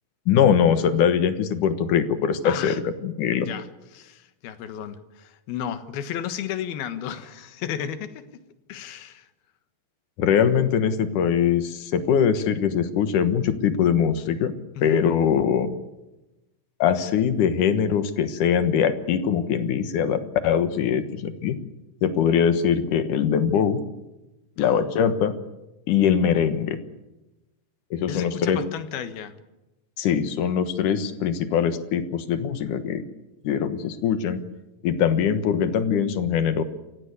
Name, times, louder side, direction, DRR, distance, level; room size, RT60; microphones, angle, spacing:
voice 1, 0.3-3.5 10.2-14.5 14.8-15.7 16.8-21.6 22.0-23.8 24.6-25.3 25.9-26.8 27.9-28.6 30.0-33.0 33.4-34.4 34.8-36.6, left 8 dB, 65° left, 11 dB, 2.6 m, -22 dB
voice 2, 2.4-2.8 3.4-3.7 3.9-8.2 8.7-9.3 14.7-15.1 24.6-25.1 28.0-29.4, left 9 dB, 80° left, 10 dB, 3.3 m, -33 dB
28.5 x 15.5 x 8.2 m, 1.0 s
omnidirectional pair, 4.3 m